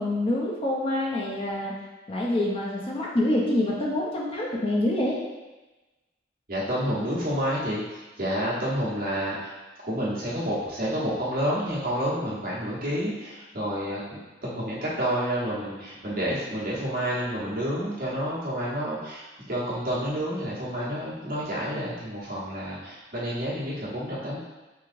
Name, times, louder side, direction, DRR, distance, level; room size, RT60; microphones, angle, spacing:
voice 1, 0.0-1.7 2.1-5.2, left 1 dB, 30° left, -3 dB, 0.5 m, -26 dB
voice 2, 6.5-9.5 9.8-24.4, equal, 50° right, -7 dB, 1.0 m, -29 dB
3.6 x 3.1 x 2.5 m, 1.1 s
head